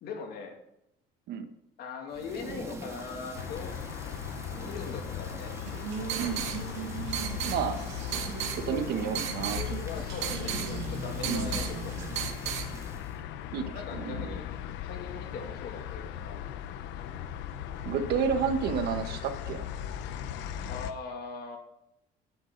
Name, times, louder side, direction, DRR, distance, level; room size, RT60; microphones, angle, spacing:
voice 1, 0.0-0.5 1.8-3.7 4.5-5.5 6.0-6.4 9.8-11.9 13.7-14.5 14.8-16.4 20.7-21.6, left 5 dB, 60° left, 2 dB, 2.6 m, -40 dB
Thunder / Rain, 2.1-13.2, right 2 dB, 15° right, 1.6 m, -45 dB
sound 1, 3.3-20.9, left 9 dB, 75° left, 0.9 m, -38 dB
sound 2, 5.6-12.7, right 9 dB, 80° right, 1.9 m, -35 dB
voice 2, 6.1-6.5 7.5-7.8 8.5-9.6 11.3-11.5 13.5-14.3 17.8-19.7, right 6 dB, 60° right, 8 dB, 1.3 m, -31 dB
13.5 x 10.0 x 4.0 m, 0.83 s
cardioid pair, 160°, 18 cm